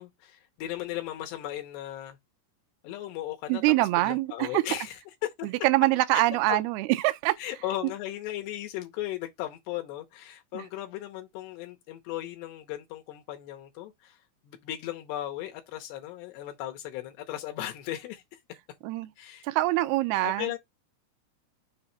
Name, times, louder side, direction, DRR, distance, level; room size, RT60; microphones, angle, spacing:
voice 1, 0.0-2.2 2.8-5.3 6.1-6.6 7.4-14.2 14.4-18.4 19.2-19.5 20.2-20.6, left 13 dB, 80° left, 3.0 m, -36 dB
voice 2, 3.5-4.6 5.4-7.4 7.8-7.9 10.5-10.6 18.8-19.1 19.4-20.5, right 18 dB, 80° right, 2.5 m, -24 dB
7.1 x 2.9 x 5.7 m
omnidirectional pair, 4.9 m